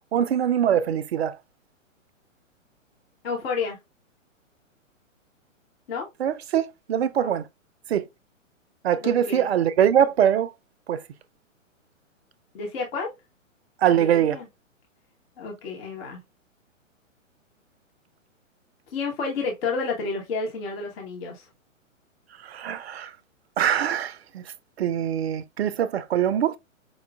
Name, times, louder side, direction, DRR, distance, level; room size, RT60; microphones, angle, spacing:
voice 1, 0.1-1.4 6.2-7.4 7.9-8.0 8.8-10.5 10.9-11.0 13.8-14.4 22.4-23.1 23.6-24.4 24.8-26.6, right 9 dB, 55° right, 0.5 m, -23 dB
voice 2, 3.2-3.8 5.9-6.1 7.2-7.3 9.0-9.5 12.5-13.1 14.0-14.5 15.4-16.2 18.9-21.5, left 4 dB, 50° left, 1.1 m, -30 dB
5.2 x 2.3 x 2.2 m
figure-of-eight pair, 120°, 39 cm